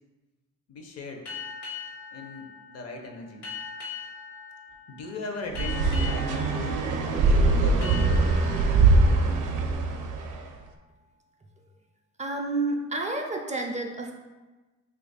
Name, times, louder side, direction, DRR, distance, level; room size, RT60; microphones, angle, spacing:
voice 1, 0.7-1.2 2.1-3.5 4.9-6.7 7.1-8.6, left 3 dB, 55° left, 3 dB, 0.6 m, -39 dB
sound 1, 1.2-10.5, left 6 dB, 85° left, 0.9 m, -42 dB
sound 2, 5.5-10.4, right 3 dB, 90° right, 0.5 m, -22 dB
voice 2, 12.2-14.1, right 2 dB, 25° right, 1 dB, 0.4 m, -30 dB
2.9 x 2.4 x 4.0 m, 1.2 s
cardioid pair, 90°, 30 cm